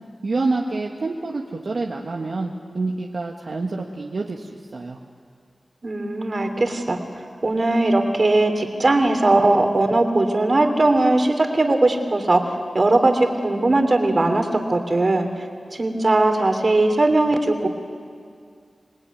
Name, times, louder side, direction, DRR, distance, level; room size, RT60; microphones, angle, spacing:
voice 1, 0.2-5.0, right 3 dB, 65° right, 0 dB, 1.6 m, -27 dB
voice 2, 5.8-15.3 15.7-17.7, right 2 dB, 50° right, 5 dB, 3.1 m, -19 dB
26.5 x 20.0 x 9.5 m, 2.2 s
wide cardioid pair, 60°, 0 cm